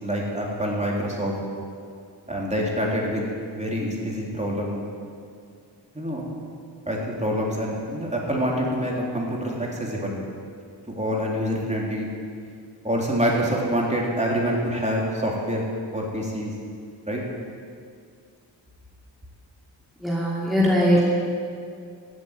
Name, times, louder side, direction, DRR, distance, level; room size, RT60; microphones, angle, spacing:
voice 1, 0.0-1.4 2.3-4.8 5.9-6.2 6.9-10.2 10.9-12.1 12.8-15.6 15.9-16.5 17.1-17.2, equal, 15° right, -3 dB, 3.5 m, -26 dB
voice 2, 20.0-21.2, equal, ahead, -6 dB, 2.8 m, -20 dB
15.0 x 8.1 x 9.4 m, 2.3 s
wide cardioid pair, 80°, 43 cm